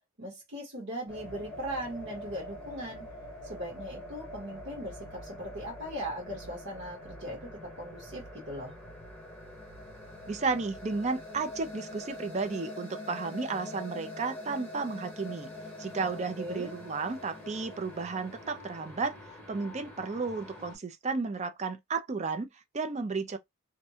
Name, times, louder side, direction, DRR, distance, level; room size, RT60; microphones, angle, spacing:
voice 1, 0.2-3.1 3.4-8.8 16.0-16.7, equal, 50° right, 1.2 m, -39 dB
sound 1, 1.1-20.8, left 1 dB, 10° left, 0.9 m, -45 dB
voice 2, 10.3-15.5 15.8-19.2 19.5-23.4, right 4 dB, 30° right, 0.4 m, -33 dB
2.6 x 2.2 x 2.7 m
head